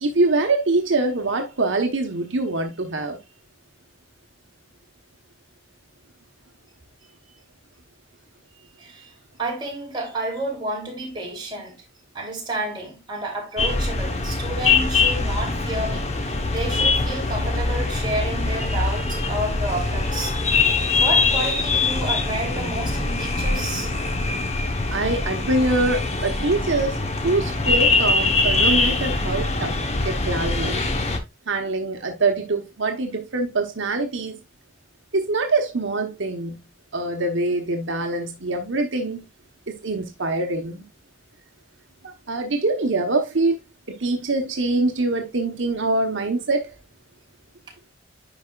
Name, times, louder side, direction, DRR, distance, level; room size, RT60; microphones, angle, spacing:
voice 1, 0.0-3.2 24.9-29.8 30.0-30.8 31.5-34.4 35.1-36.6 36.9-39.2 39.7-40.8 42.0-43.6 43.9-46.7, right 2 dB, 75° right, 1.0 m, -24 dB
voice 2, 8.8-9.1 9.4-11.8 12.1-20.4 21.0-23.9, right 2 dB, 25° right, 3.0 m, -30 dB
sound 1, 13.6-31.2, left 3 dB, 30° left, 0.9 m, -23 dB
10.5 x 4.9 x 2.3 m
head